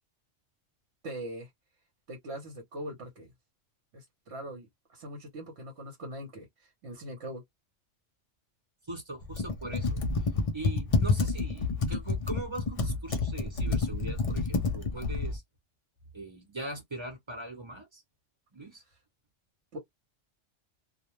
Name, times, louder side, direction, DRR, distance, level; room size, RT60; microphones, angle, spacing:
voice 1, 1.0-1.5 2.1-3.3 3.9-7.4 19.7-19.8, right 1 dB, 65° right, 1.1 m, -41 dB
voice 2, 8.9-10.0 10.5-15.4 16.1-18.0 18.5-18.8, right 2 dB, 25° right, 0.9 m, -41 dB
Computer keyboard, 9.2-15.4, left 3 dB, 55° left, 0.4 m, -29 dB
2.3 x 2.1 x 2.9 m
omnidirectional pair, 1.3 m